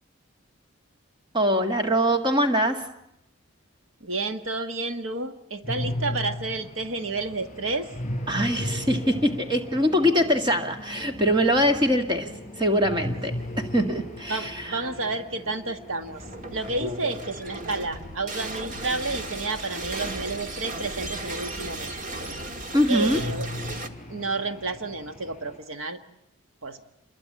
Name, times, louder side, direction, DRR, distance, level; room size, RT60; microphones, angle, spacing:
voice 1, 1.3-2.8 8.3-12.3 12.6-13.3 13.6-14.7 16.8-17.0 22.7-23.2, equal, 20° right, 5 dB, 1.9 m, -23 dB
voice 2, 4.0-7.9 14.3-16.2 16.5-21.9 22.9-23.5 24.1-26.0 26.6-26.8, right 3 dB, 70° right, 8 dB, 1.4 m, -30 dB
sound 1, 5.6-25.6, left 1 dB, 30° left, 6.2 m, -38 dB
sound 2, 16.1-23.9, right 2 dB, 35° right, 1.6 m, -36 dB
28.0 x 21.5 x 8.7 m, 0.80 s
head